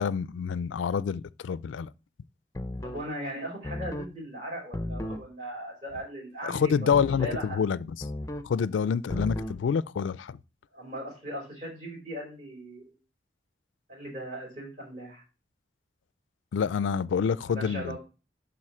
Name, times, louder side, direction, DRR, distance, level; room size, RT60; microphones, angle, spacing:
voice 1, 0.0-1.9 6.4-8.1 8.4-10.4 16.5-18.0, left 6 dB, 90° left, 0.4 m, -27 dB
sound 1, 2.5-3.1 3.6-4.1 4.7-5.3 6.9-7.4 8.0-8.5 9.1-9.6, left 1 dB, 15° left, 0.5 m, -34 dB
voice 2, 2.8-6.9 7.2-7.6 10.7-13.0 13.9-15.2 17.5-18.0, equal, 40° right, 4.6 m, -38 dB
11.5 x 4.1 x 4.3 m
head